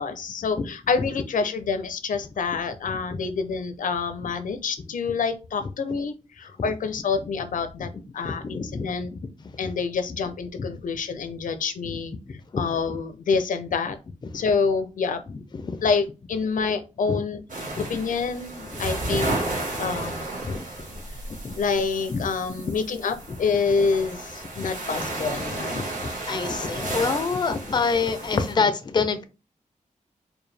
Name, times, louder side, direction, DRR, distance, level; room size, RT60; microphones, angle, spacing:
voice 1, 0.0-9.1 9.6-12.1 12.6-14.0 14.3-15.2 15.8-19.4 19.8-20.2 21.6-25.8, left 5 dB, 85° left, 0.5 m, -27 dB
voice 2, 8.2-9.2 9.6-9.7 10.6-10.7 12.5-12.6 15.3-15.8 17.1-17.2 17.7-17.9 18.7-18.8 20.4-20.6 21.4-21.6 22.1-22.6 24.5-24.7 25.5-25.8 26.3-29.2, left 4 dB, 35° left, 0.4 m, -27 dB
sound 1, 17.5-28.5, right 2 dB, 75° right, 1.9 m, -33 dB
4.6 x 2.2 x 3.3 m
wide cardioid pair, 125°, 13 cm